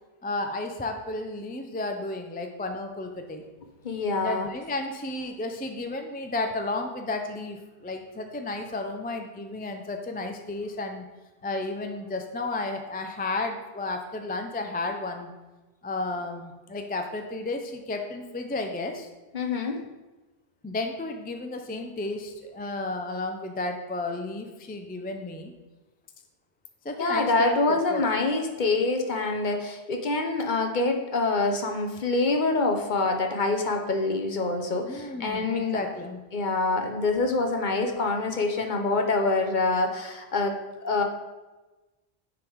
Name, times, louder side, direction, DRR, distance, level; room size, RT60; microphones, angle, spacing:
voice 1, 0.2-3.4 4.2-11.0 11.4-15.3 15.8-19.1 20.6-25.5 26.8-27.6 27.9-28.1 34.9-36.2, left 2 dB, 15° left, 4 dB, 0.4 m, -32 dB
voice 2, 3.8-4.5 19.3-19.8 27.0-35.8 36.3-41.0, left 3 dB, 50° left, 4 dB, 0.9 m, -26 dB
9.7 x 3.9 x 4.6 m, 1.1 s
omnidirectional pair, 1.1 m